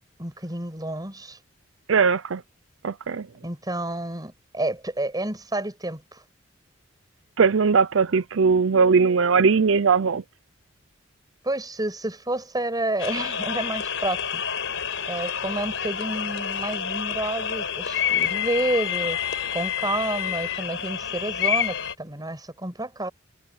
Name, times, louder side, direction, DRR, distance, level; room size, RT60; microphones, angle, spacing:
voice 1, 0.2-1.4 3.4-6.2 11.4-14.4 15.1-19.2 19.5-23.1, right 1 dB, 20° right, 6.1 m, -29 dB
voice 2, 1.9-2.4 2.8-3.3 7.4-10.2, right 5 dB, 80° right, 0.6 m, -19 dB
sound 1, 13.0-21.9, left 8 dB, 75° left, 4.9 m, -28 dB
head